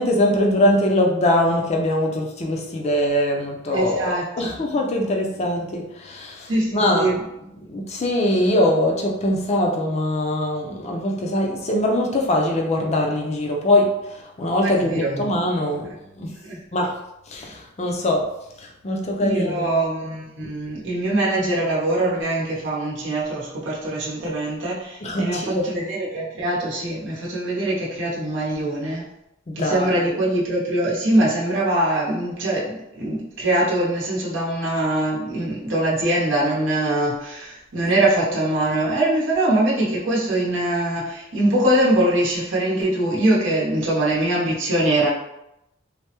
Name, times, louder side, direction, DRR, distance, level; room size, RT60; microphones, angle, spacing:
voice 1, 0.0-7.2 7.7-15.9 16.2-16.3 16.7-16.9 17.3-18.3 18.6-19.7 25.0-25.7 29.5-30.1 38.3-38.4, left 1 dB, 35° left, 1 dB, 0.4 m, -22 dB
voice 2, 3.7-4.5 6.5-7.2 14.6-15.3 16.4-16.6 19.2-29.1 29.6-45.1, right 1 dB, 70° right, -6 dB, 0.8 m, -23 dB
3.3 x 2.0 x 2.9 m, 0.87 s
head